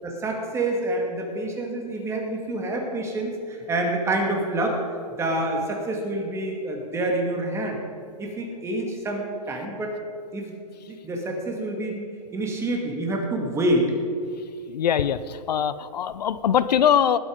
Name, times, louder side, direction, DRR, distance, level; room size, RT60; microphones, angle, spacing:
voice 1, 0.0-4.8 5.2-7.8 8.2-10.0 10.3-10.5 10.9-13.9, right 1 dB, 15° right, 1 dB, 2.2 m, -27 dB
voice 2, 14.7-17.2, left 8 dB, 80° left, 15 dB, 0.6 m, -22 dB
19.0 x 8.2 x 5.2 m, 2.3 s
hypercardioid pair, 140°, 21 cm